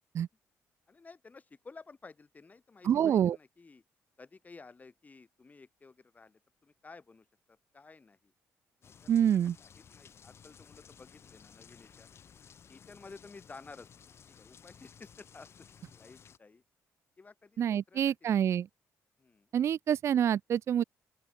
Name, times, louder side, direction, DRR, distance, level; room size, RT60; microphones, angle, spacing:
voice 1, 0.9-3.8 4.2-8.3 8.8-12.1 12.7-13.9 14.3-16.6 17.2-18.3 19.2-19.5, left 4 dB, 30° left, 7.1 m, -54 dB
voice 2, 2.9-3.4 9.1-9.6 17.6-18.7 19.5-20.8, right 9 dB, 55° right, 0.3 m, -27 dB
sound 1, 8.8-16.4, left 7 dB, 50° left, 1.3 m, -56 dB
open air
cardioid pair, 100°, 6 cm